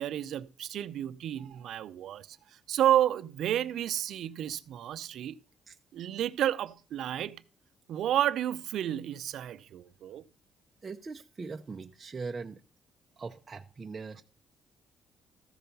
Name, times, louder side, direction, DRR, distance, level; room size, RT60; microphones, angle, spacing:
voice 1, 0.0-2.4 2.7-5.4 5.9-7.4 7.9-10.2, right 11 dB, 75° right, 0.6 m, -31 dB
voice 2, 10.8-12.6 13.2-14.2, right 4 dB, 35° right, 0.6 m, -40 dB
14.0 x 5.6 x 5.4 m
cardioid pair, 90°, 0 cm